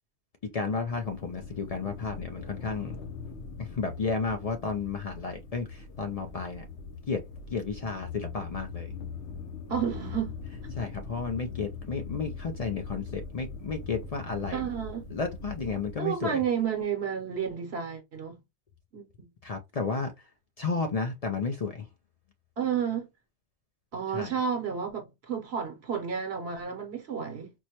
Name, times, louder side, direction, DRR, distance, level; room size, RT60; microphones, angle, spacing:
voice 1, 0.5-3.0 3.6-6.6 7.1-7.2 7.5-8.9 10.7-14.7 15.1-16.4 19.4-20.3 20.6-21.9 24.1-24.4, left 4 dB, 50° left, 0.4 m, -32 dB
sound 1, 0.9-15.9, left 5 dB, 85° left, 1.0 m, -41 dB
voice 2, 9.7-10.3 14.5-15.0 16.0-18.4 18.9-19.3 22.6-23.1 23.9-27.5, right 7 dB, 70° right, 1.0 m, -31 dB
4.4 x 2.1 x 2.8 m
omnidirectional pair, 1.1 m